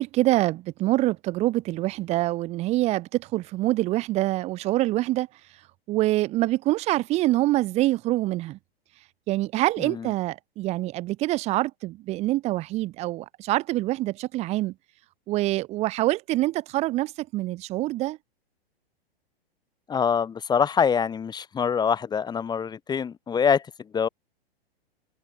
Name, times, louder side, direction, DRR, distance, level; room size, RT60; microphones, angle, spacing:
voice 1, 0.0-5.3 5.9-8.6 9.3-14.7 15.3-18.2, right 17 dB, 20° right, 0.6 m, -25 dB
voice 2, 9.8-10.1 19.9-24.1, left 7 dB, 15° left, 1.1 m, -25 dB
figure-of-eight pair, 105°, 31 cm